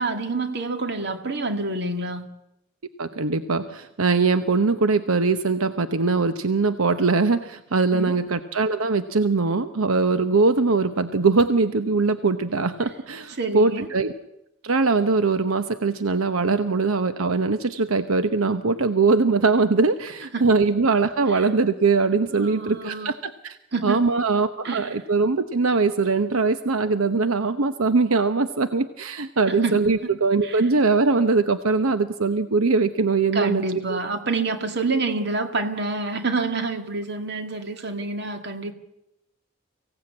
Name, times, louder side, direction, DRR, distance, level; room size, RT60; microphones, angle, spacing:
voice 1, 0.0-2.3 7.9-8.2 13.4-13.9 20.3-20.6 21.3-21.4 22.3-23.1 23.7-24.2 24.6-25.0 29.5-30.1 30.4-30.6 33.3-38.7, right 3 dB, 50° right, 7 dB, 2.1 m, -28 dB
voice 2, 3.0-14.1 14.6-23.6 23.8-33.6 33.9-34.0, right 4 dB, 80° right, 11 dB, 0.9 m, -21 dB
24.0 x 16.5 x 8.7 m, 0.87 s
head